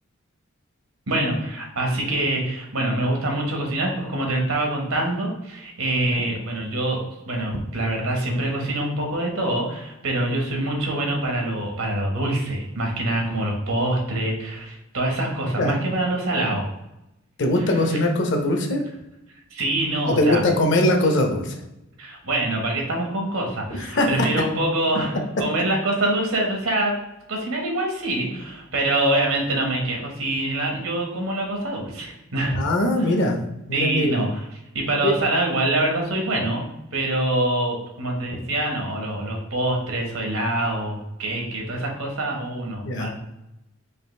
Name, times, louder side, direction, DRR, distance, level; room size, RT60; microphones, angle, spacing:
voice 1, 1.1-16.7 17.6-17.7 19.5-20.4 22.0-27.0 27.3-32.6 33.7-34.4 34.7-36.6 36.9-43.1, right 1 dB, 85° right, 0 dB, 1.2 m, -25 dB
voice 2, 17.4-18.8 20.0-21.5 23.9-24.3 32.6-33.4 33.7-34.2 35.0-35.1 36.3-36.4 42.8-43.1, left 1 dB, 60° left, 3 dB, 0.7 m, -21 dB
4.9 x 2.6 x 3.2 m, 0.90 s
head